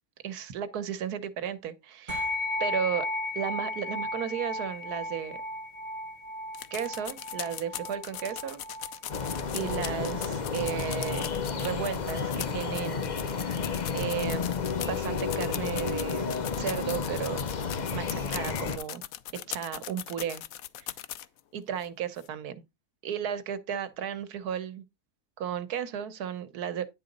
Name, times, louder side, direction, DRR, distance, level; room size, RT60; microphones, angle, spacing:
voice 1, 0.2-2.2 2.6-3.1 3.3-5.4 6.7-8.6 9.5-11.3 11.6-14.5 14.8-17.5 17.9-19.0 19.3-20.4 20.8-20.9 21.5-22.6 23.0-24.8 25.4-26.9, right 8 dB, 90° right, 1.4 m, -34 dB
sound 1, 2.1-11.8, left 1 dB, 25° right, 1.5 m, -36 dB
sound 2, 6.5-21.4 21.8-21.9 22.2-22.3, left 12 dB, 70° left, 1.0 m, -39 dB
sound 3, 9.1-18.8, left 5 dB, 40° left, 0.7 m, -32 dB
10.0 x 3.8 x 5.2 m
omnidirectional pair, 1.6 m